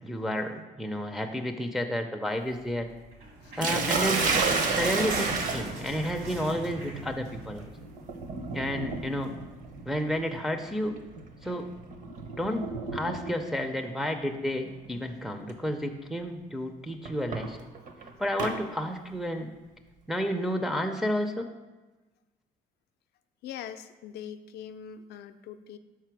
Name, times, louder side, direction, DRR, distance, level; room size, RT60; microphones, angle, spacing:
voice 1, 0.0-2.9 3.6-4.4 4.7-7.7 8.5-9.4 9.8-11.0 11.4-11.7 12.4-17.6 18.2-19.5 20.1-21.5, equal, ahead, 3 dB, 0.4 m, -31 dB
sound 1, 3.1-7.8 8.2-8.3 8.5-8.7 9.4-9.5, right 2 dB, 70° right, 1.4 m, -37 dB
Sink (filling or washing), 3.6-13.5 14.7-15.0 15.5-15.6 17.0-18.6, right 4 dB, 50° right, 0.7 m, -32 dB
voice 2, 23.4-25.8, left 9 dB, 70° left, 9 dB, 0.4 m, -42 dB
5.9 x 4.1 x 4.6 m, 1.2 s
cardioid pair, 110°, 17 cm